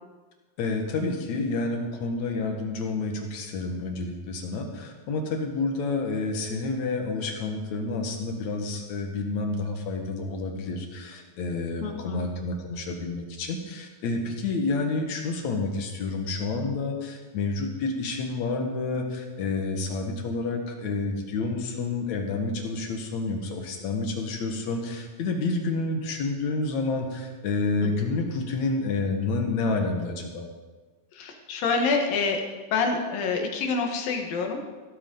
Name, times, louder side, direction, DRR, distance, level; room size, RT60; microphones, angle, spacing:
voice 1, 0.6-30.5, left 3 dB, 60° left, 3 dB, 2.6 m, -29 dB
voice 2, 11.8-12.2 27.8-27.9 31.1-32.4 32.7-34.6, left 4 dB, 80° left, 3 dB, 3.2 m, -27 dB
15.5 x 13.0 x 3.9 m, 1.3 s
omnidirectional pair, 4.0 m